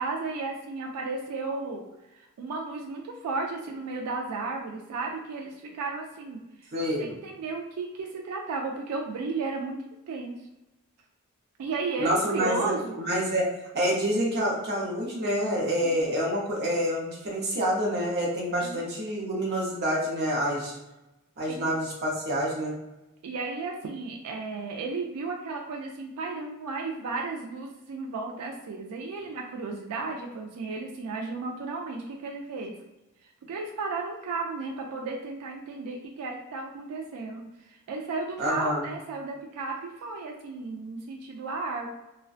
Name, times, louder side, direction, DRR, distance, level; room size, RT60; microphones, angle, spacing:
voice 1, 0.0-1.8 2.1-6.7 7.0-9.8 10.1-10.4 11.6-13.1 15.8-16.1 18.6-18.8 21.5-21.7 23.2-32.7 33.5-41.9, right 3 dB, 90° right, 1 dB, 0.3 m, -34 dB
voice 2, 6.7-7.2 12.0-13.5 13.7-20.8 21.4-22.7 38.4-38.9, equal, 45° right, -3 dB, 0.7 m, -27 dB
2.5 x 2.1 x 2.3 m, 0.97 s
head